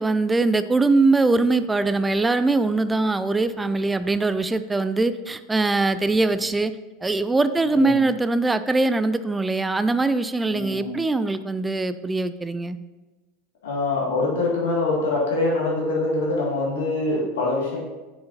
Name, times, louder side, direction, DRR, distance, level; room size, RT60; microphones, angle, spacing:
voice 1, 0.0-6.7 7.0-12.8, right 3 dB, 10° right, 13 dB, 0.4 m, -22 dB
voice 2, 7.6-8.0 10.5-11.0 13.6-17.8, left 2 dB, 65° left, -4 dB, 2.1 m, -24 dB
6.6 x 5.7 x 4.1 m, 1.2 s
figure-of-eight pair, 80°, 0 cm